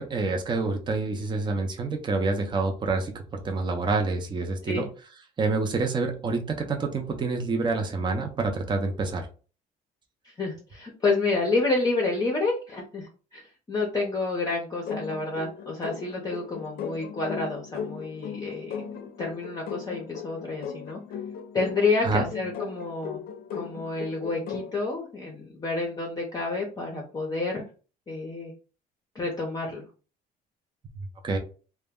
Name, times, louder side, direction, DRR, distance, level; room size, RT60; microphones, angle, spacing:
voice 1, 0.0-4.9 5.4-9.3 22.0-22.3 31.2-31.4, right 3 dB, 25° right, 4 dB, 0.6 m, -27 dB
voice 2, 10.2-18.8 19.2-21.0 21.5-23.2 23.5-27.6 28.1-28.5 29.1-29.9, left 3 dB, 20° left, -1 dB, 0.6 m, -29 dB
sound 1, 14.9-24.8, left 7 dB, 60° left, 0.5 m, -38 dB
2.1 x 2.1 x 3.5 m, 0.36 s
cardioid pair, 110°, 17 cm